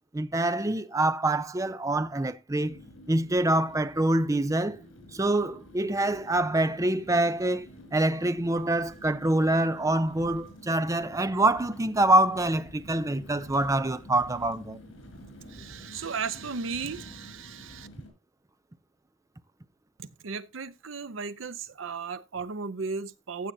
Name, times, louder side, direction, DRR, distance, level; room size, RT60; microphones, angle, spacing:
voice 1, 0.1-2.8 3.1-4.8 5.1-14.8, right 1 dB, 15° right, 0.5 m, -25 dB
sound 1, 2.6-18.1, equal, 75° left, 5.5 m, -49 dB
voice 2, 15.5-17.9 20.0-23.5, right 5 dB, 75° right, 0.7 m, -35 dB
15.0 x 7.3 x 2.7 m
head